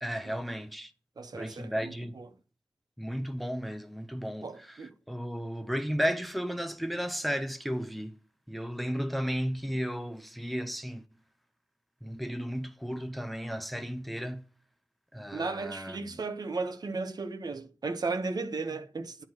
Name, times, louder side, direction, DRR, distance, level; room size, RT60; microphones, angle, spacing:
voice 1, 0.0-0.9 1.3-2.2 3.0-4.8 5.1-8.2 8.5-11.0 12.0-14.5 15.1-16.1, equal, ahead, 0.7 m, -34 dB
voice 2, 1.2-2.3 4.4-4.9 15.3-19.2, right 3 dB, 60° right, 0.9 m, -35 dB
8.7 x 3.0 x 6.2 m
cardioid pair, 40°, 8 cm